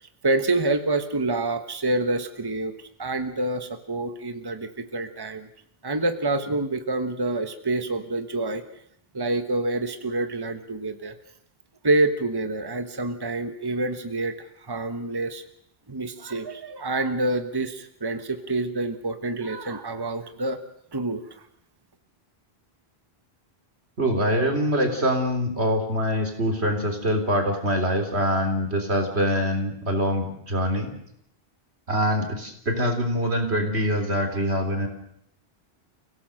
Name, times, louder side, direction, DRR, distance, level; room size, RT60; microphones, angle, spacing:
voice 1, 0.2-2.7 3.0-5.5 5.8-8.6 9.1-11.1 11.8-15.4 15.9-20.6 20.9-21.2, right 2 dB, 20° right, 8 dB, 1.3 m, -27 dB
voice 2, 24.0-30.9 31.9-34.9, equal, 80° right, 4 dB, 3.8 m, -24 dB
30.0 x 17.0 x 6.6 m, 0.71 s
omnidirectional pair, 1.1 m